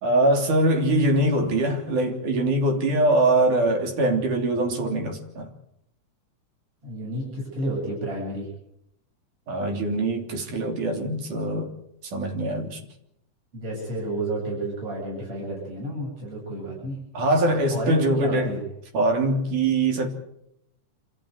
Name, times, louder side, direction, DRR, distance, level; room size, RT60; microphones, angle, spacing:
voice 1, 0.0-5.5 9.5-11.7 12.1-12.8 17.1-18.5 18.9-20.1, right 1 dB, 90° right, 4.9 m, -23 dB
voice 2, 6.8-8.5 13.5-17.0 17.7-18.6, right 1 dB, 45° right, 9.0 m, -31 dB
27.0 x 14.0 x 9.5 m
omnidirectional pair, 3.5 m